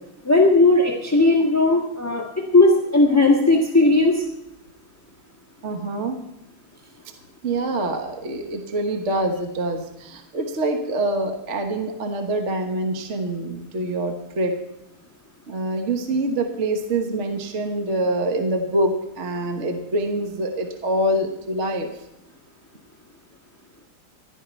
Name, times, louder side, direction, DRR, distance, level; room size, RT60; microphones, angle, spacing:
voice 1, 0.2-2.2 2.5-4.2, left 2 dB, 10° left, -1 dB, 1.5 m, -17 dB
voice 2, 5.6-6.2 7.4-14.6 15.5-21.9, right 1 dB, 40° right, 4 dB, 1.4 m, -25 dB
15.0 x 12.0 x 4.4 m, 0.90 s
omnidirectional pair, 2.2 m